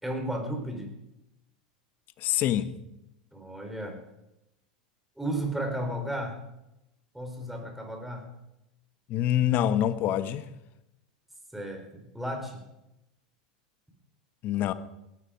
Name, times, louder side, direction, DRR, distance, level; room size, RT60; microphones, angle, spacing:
voice 1, 0.0-0.9 3.3-4.0 5.2-6.4 7.1-8.3 11.5-11.8 12.1-12.6, right 1 dB, 5° right, 4.3 m, -33 dB
voice 2, 2.2-2.7 9.1-10.5 14.4-14.7, left 11 dB, 45° left, 1.1 m, -26 dB
18.0 x 12.0 x 5.1 m
hypercardioid pair, 90°, 4 cm